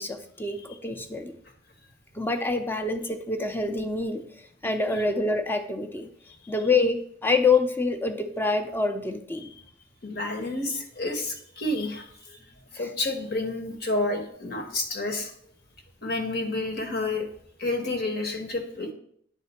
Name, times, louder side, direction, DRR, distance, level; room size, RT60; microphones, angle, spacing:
voice 1, 0.0-1.4 2.1-4.2 4.6-6.1 6.5-9.5 12.8-12.9, left 3 dB, 10° left, 6 dB, 0.6 m, -26 dB
voice 2, 10.0-12.4 12.7-15.3 16.0-17.3 17.6-18.9, left 2 dB, 60° left, 3 dB, 1.3 m, -30 dB
9.2 x 3.8 x 4.3 m, 0.62 s
head